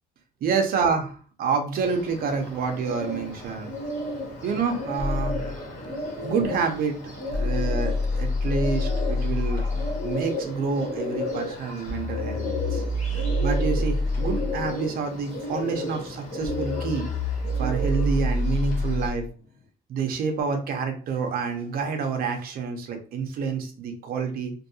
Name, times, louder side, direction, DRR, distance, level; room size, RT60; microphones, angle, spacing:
voice 1, 0.4-3.7 4.4-5.4 6.2-9.6 10.0-17.1 17.6-19.3 19.9-24.5, right 5 dB, 60° right, 5 dB, 0.7 m, -28 dB
Bird, 1.8-19.1, left 1 dB, 45° left, 1.4 m, -34 dB
sound 1, 5.0-10.1 11.9-19.3, left 1 dB, 60° left, 0.8 m, -27 dB
2.6 x 2.6 x 2.7 m, 0.41 s
cardioid pair, 110°, 17 cm